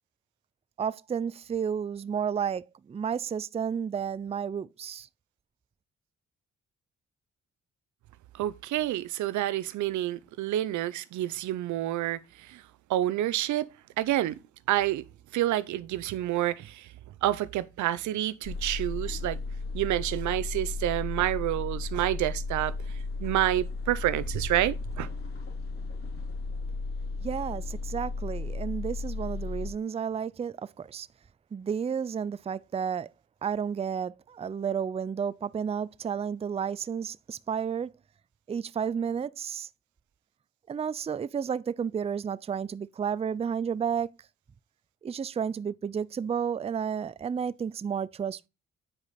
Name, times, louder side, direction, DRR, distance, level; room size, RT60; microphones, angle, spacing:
voice 1, 0.8-5.1 27.2-31.1 31.5-33.1 33.4-37.9 38.5-39.7 40.7-44.1 45.0-48.5, right 7 dB, 20° right, 0.4 m, -32 dB
voice 2, 8.4-12.2 12.5-12.6 12.9-13.7 14.0-14.4 14.7-15.0 15.3-16.8 17.2-19.4 19.7-22.7 23.2-25.1, right 14 dB, 80° right, 0.6 m, -28 dB
sound 1, 18.4-29.7, left 3 dB, 50° left, 3.0 m, -35 dB
8.7 x 4.9 x 4.1 m
supercardioid pair, 60°, 29 cm